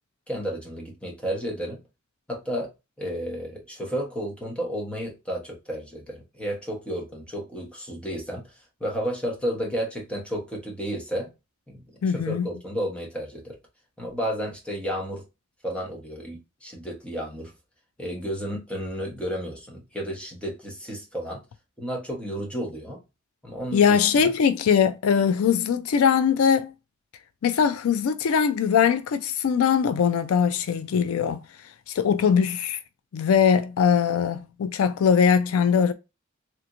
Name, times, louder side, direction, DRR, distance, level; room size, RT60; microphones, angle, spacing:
voice 1, 0.3-1.8 2.3-2.7 3.0-8.5 8.8-11.3 11.7-11.8 12.1-13.6 14.0-15.2 15.6-17.5 18.0-21.4 21.8-23.0 23.4-24.3, equal, 5° left, 1.0 m, -32 dB
voice 2, 12.0-12.5 23.7-26.7 27.4-31.4 31.9-32.8 33.1-35.9, left 7 dB, 75° left, 0.4 m, -21 dB
3.3 x 3.0 x 2.5 m
head